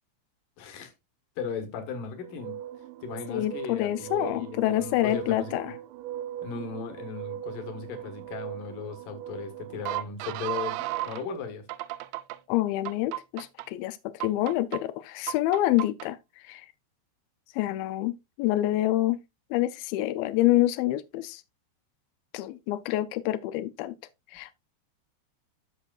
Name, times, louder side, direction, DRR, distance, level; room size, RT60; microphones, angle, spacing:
voice 1, 0.6-0.9 1.4-2.6 3.0-5.5 6.4-11.6, left 5 dB, 60° left, 2.7 m, -37 dB
sound 1, 2.2-11.2 11.7-12.4 12.9-13.7 14.2-14.8 15.3-16.1, right 14 dB, 90° right, 2.8 m, -37 dB
voice 2, 3.3-5.7 12.5-16.7 17.5-19.2 19.5-21.4 22.3-24.0 24.3-24.5, left 15 dB, 90° left, 2.1 m, -27 dB
13.0 x 5.8 x 2.4 m
omnidirectional pair, 4.9 m